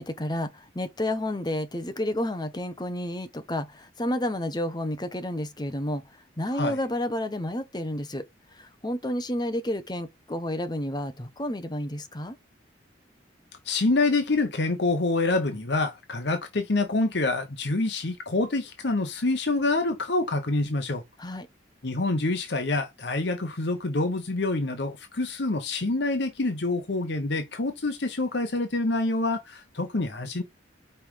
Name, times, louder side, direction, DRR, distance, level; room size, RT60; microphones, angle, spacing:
voice 1, 0.0-6.0 6.4-8.2 8.6-12.4 21.2-21.5, left 1 dB, 20° left, 0.9 m, -30 dB
voice 2, 13.6-21.0 21.8-30.4, left 2 dB, 60° left, 1.0 m, -26 dB
5.5 x 5.1 x 4.6 m
head